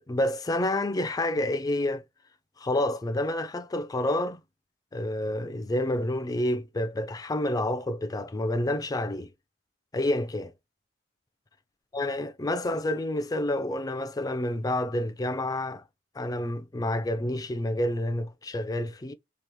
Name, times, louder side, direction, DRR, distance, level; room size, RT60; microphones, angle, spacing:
voice 1, 0.0-2.0 2.6-4.4 4.9-9.3 9.9-10.5 11.9-15.8 16.1-19.1, left 1 dB, 20° left, 0.4 m, -29 dB
3.0 x 2.4 x 3.4 m
head